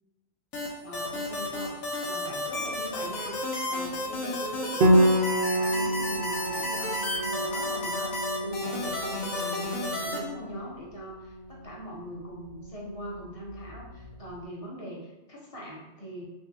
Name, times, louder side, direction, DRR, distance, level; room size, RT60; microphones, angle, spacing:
sound 1, 0.5-10.2, left 1 dB, 85° left, 1.3 m, -32 dB
voice 1, 0.8-3.4 3.6-8.1 8.4-16.3, equal, 30° left, -4 dB, 0.8 m, -41 dB
Piano, 4.8-14.1, right 1 dB, 60° right, 0.6 m, -29 dB
6.0 x 2.4 x 2.7 m, 1.1 s
omnidirectional pair, 1.4 m